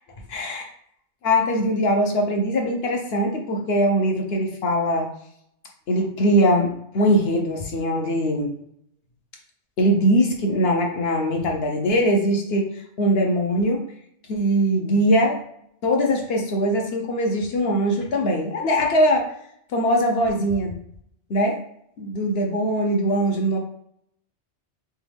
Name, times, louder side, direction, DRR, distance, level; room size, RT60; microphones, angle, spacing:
voice 1, 0.3-0.7 1.2-5.1 5.9-8.5 9.8-13.8 14.3-15.4 15.8-19.3 19.7-20.8 21.3-21.6 22.0-23.6, equal, 60° left, 2 dB, 1.0 m, -21 dB
3.5 x 3.1 x 3.4 m, 0.69 s
omnidirectional pair, 1.2 m